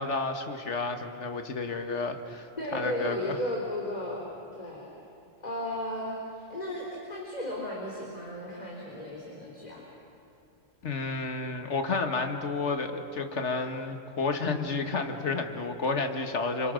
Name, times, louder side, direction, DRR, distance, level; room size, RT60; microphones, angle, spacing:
voice 1, 0.0-3.4 10.8-16.7, left 4 dB, 65° left, 6 dB, 1.9 m, -31 dB
voice 2, 2.6-4.2 4.5-4.9 5.4-9.8, left 1 dB, 30° left, -3 dB, 3.6 m, -35 dB
29.0 x 27.0 x 6.4 m, 2.7 s
omnidirectional pair, 1.3 m